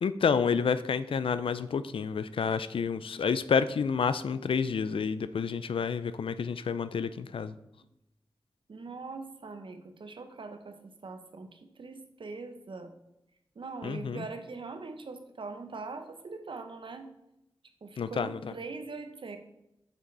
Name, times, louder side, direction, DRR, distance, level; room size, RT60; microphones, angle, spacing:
voice 1, 0.0-7.5 13.8-14.2 18.0-18.5, left 6 dB, 80° left, 13 dB, 0.4 m, -29 dB
voice 2, 8.7-12.9 13.6-17.1 17.8-19.4, right 4 dB, 70° right, 7 dB, 0.7 m, -42 dB
6.2 x 5.3 x 4.0 m, 0.85 s
cardioid pair, 50°, 9 cm